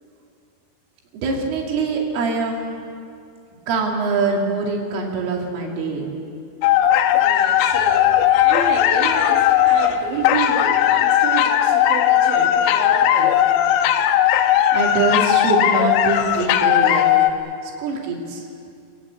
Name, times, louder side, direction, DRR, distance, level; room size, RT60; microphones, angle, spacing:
voice 1, 1.1-2.7 3.7-6.1 14.7-17.1 17.8-18.4, right 4 dB, 90° right, -1 dB, 5.4 m, -23 dB
sound 1, 6.6-17.3, left 11 dB, 90° left, 3.5 m, -17 dB
voice 2, 7.1-13.5, right 4 dB, 70° right, -1 dB, 4.4 m, -30 dB
27.0 x 19.0 x 8.5 m, 2.4 s
omnidirectional pair, 5.6 m